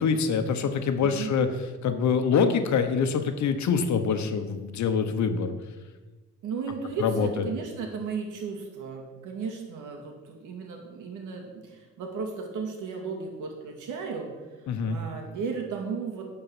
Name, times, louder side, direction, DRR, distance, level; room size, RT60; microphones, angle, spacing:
voice 1, 0.0-1.5 1.8-5.5 7.0-7.3 14.7-15.0, left 6 dB, 65° left, 7 dB, 1.1 m, -25 dB
voice 2, 6.4-16.3, right 5 dB, 85° right, 2 dB, 2.2 m, -35 dB
11.0 x 4.7 x 7.1 m, 1.2 s
cardioid pair, 90°, 30 cm